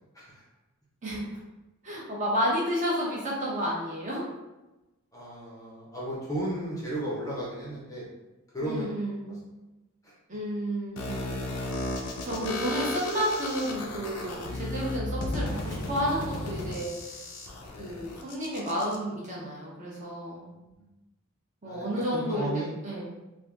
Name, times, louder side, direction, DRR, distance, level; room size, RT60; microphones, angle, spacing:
voice 1, 1.8-4.2 8.6-9.5 10.3-11.2 12.2-17.1 17.8-20.5 21.6-22.5 22.8-23.1, equal, 35° right, -4 dB, 0.7 m, -31 dB
voice 2, 5.1-8.1 8.5-8.9 9.3-9.4 10.0-10.1 17.7-18.0 20.8-20.9 21.6-22.7, right 1 dB, 15° left, -5 dB, 0.6 m, -34 dB
sound 1, 11.0-19.0, left 2 dB, 90° left, 0.5 m, -34 dB
3.4 x 2.6 x 2.4 m, 1.0 s
head